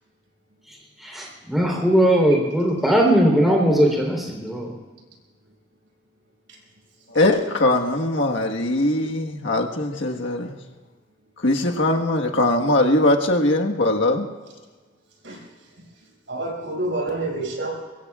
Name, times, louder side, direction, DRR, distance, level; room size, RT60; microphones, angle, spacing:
voice 1, 1.0-4.7, equal, ahead, 3.7 m, -19 dB
voice 2, 7.1-10.6 11.4-14.3, left 1 dB, 90° left, 1.5 m, -21 dB
voice 3, 16.3-17.7, right 2 dB, 80° right, 6.3 m, -27 dB
24.0 x 22.5 x 2.4 m
head